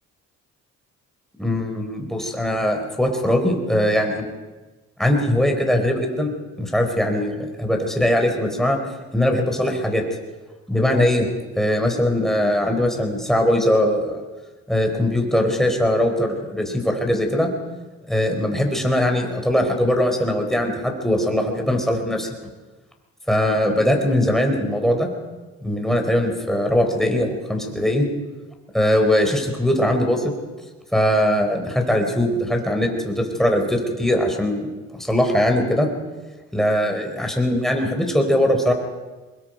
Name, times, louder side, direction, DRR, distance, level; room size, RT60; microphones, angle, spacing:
voice 1, 1.4-4.3 5.0-8.8 9.1-10.0 10.7-11.3 11.6-14.2 14.7-17.5 18.1-22.3 23.3-25.1 25.6-28.1 28.7-30.3 30.9-35.9 36.5-38.7, left 1 dB, ahead, 3 dB, 4.4 m, -21 dB
24.0 x 21.0 x 5.3 m, 1.2 s
cardioid pair, 90°, 30 cm